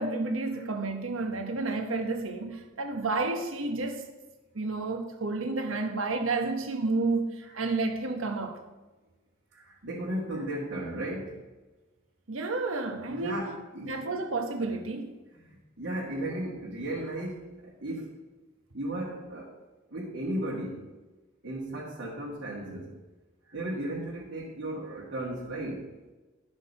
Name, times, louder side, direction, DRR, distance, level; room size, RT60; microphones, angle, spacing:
voice 1, 0.0-4.1 4.5-8.6 12.3-13.4 13.9-15.2, right 3 dB, 75° right, 1.2 m, -31 dB
voice 2, 9.5-11.4 13.1-14.0 15.4-18.2 18.7-19.6 19.9-20.8 21.4-22.9 23.5-25.9, right 1 dB, 60° right, 2.0 m, -35 dB
11.5 x 6.3 x 5.4 m
head